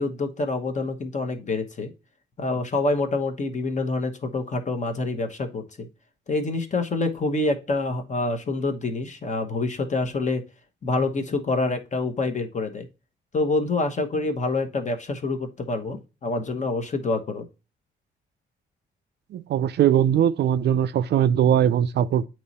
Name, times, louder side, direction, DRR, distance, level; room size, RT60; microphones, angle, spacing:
voice 1, 0.0-1.9 2.4-5.9 6.3-10.4 10.8-12.9 13.3-17.5, left 3 dB, 35° left, 1.0 m, -26 dB
voice 2, 19.3-22.3, right 10 dB, 60° right, 0.4 m, -20 dB
7.9 x 3.1 x 4.1 m
cardioid pair, 90°, 20 cm